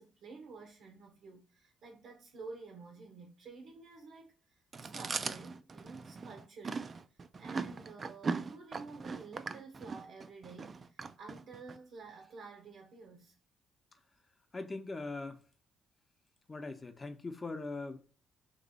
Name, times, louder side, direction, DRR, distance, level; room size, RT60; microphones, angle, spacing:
voice 1, 0.0-13.4, right 4 dB, 75° right, 0.8 m, -51 dB
Chewing mastication, 4.7-11.8, right 4 dB, 40° right, 0.3 m, -40 dB
voice 2, 14.5-15.4 16.5-18.0, left 3 dB, 30° left, 0.7 m, -41 dB
3.0 x 3.0 x 4.1 m
cardioid pair, 90°, 0 cm